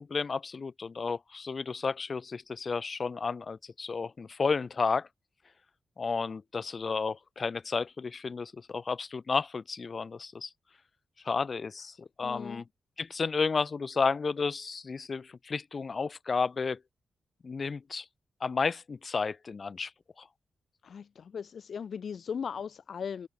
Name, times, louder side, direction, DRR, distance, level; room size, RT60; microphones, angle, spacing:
voice 1, 0.0-5.1 6.0-10.5 11.2-12.6 13.0-16.8 17.4-18.0 18.4-19.9 20.2-20.3, left 4 dB, 45° left, 1.2 m, -32 dB
voice 2, 12.2-12.6 20.8-23.3, left 7 dB, 65° left, 0.4 m, -38 dB
open air
wide cardioid pair, 100°, 0 cm